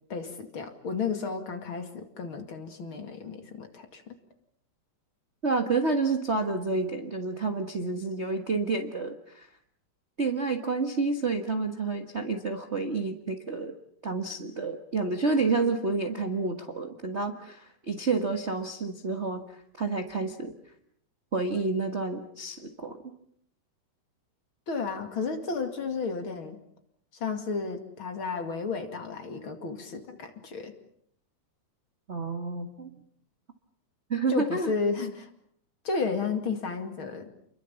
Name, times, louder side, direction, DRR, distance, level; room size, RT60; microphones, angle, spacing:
voice 1, 0.1-4.0 24.7-26.6 27.1-30.7 34.3-35.3 35.8-37.3, left 4 dB, 45° left, 7 dB, 2.8 m, -32 dB
voice 2, 5.4-9.5 10.2-13.8 14.0-20.5 21.3-23.0 32.1-32.9 34.1-34.7, right 3 dB, 35° right, 5 dB, 1.2 m, -29 dB
29.5 x 22.5 x 7.1 m, 0.67 s
omnidirectional pair, 3.4 m